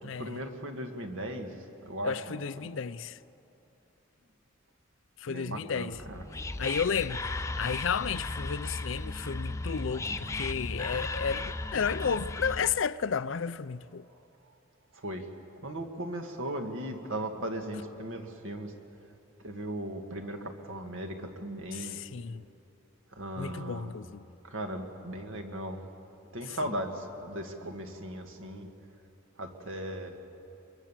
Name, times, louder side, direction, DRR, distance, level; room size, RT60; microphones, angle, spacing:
voice 1, 0.0-2.7 5.3-6.2 14.9-15.3 15.6-18.7 19.4-22.0 23.1-23.9 24.4-25.8 26.3-28.7 29.4-30.2, right 1 dB, 70° right, 2.1 m, -37 dB
voice 2, 2.0-3.2 5.2-5.9 6.6-14.0 21.7-22.5 23.4-24.2, left 6 dB, 65° left, 0.5 m, -32 dB
Whispering, 5.9-12.8, left 2 dB, 15° left, 0.5 m, -36 dB
24.0 x 23.0 x 7.4 m
head